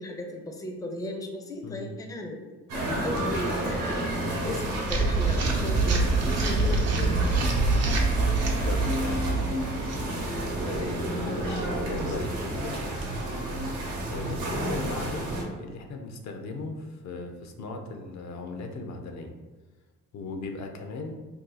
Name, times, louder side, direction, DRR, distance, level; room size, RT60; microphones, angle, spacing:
voice 1, 0.0-2.4 2.7-3.9 4.4-7.2 10.6-11.0, left 1 dB, 10° left, 2 dB, 0.4 m, -36 dB
sound 1, 2.7-15.4, right 1 dB, 85° right, 0.9 m, -31 dB
sound 2, 4.9-11.1, right 3 dB, 55° right, 0.6 m, -26 dB
voice 2, 8.6-9.5 11.2-13.1 14.1-15.3 15.6-19.3 20.1-21.2, left 3 dB, 65° left, 4 dB, 0.5 m, -37 dB
2.6 x 2.3 x 3.8 m, 1.3 s
cardioid pair, 90°, 30 cm